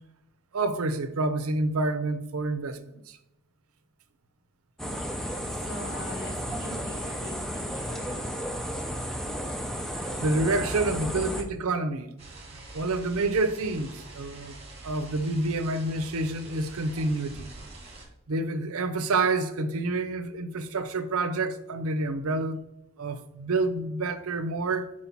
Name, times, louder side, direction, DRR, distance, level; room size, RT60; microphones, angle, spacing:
voice 1, 0.5-2.8 9.9-12.1 12.7-14.6 14.8-17.5 18.3-22.6 23.0-24.9, right 2 dB, 85° right, 0.6 m, -28 dB
sound 1, 4.8-11.4, equal, ahead, 0.5 m, -33 dB
voice 2, 5.5-8.2 10.6-10.9 11.1-11.3, left 1 dB, 45° left, 2.1 m, -42 dB
sound 2, 12.2-18.0, right 2 dB, 30° right, 1.4 m, -45 dB
4.8 x 4.1 x 5.8 m
head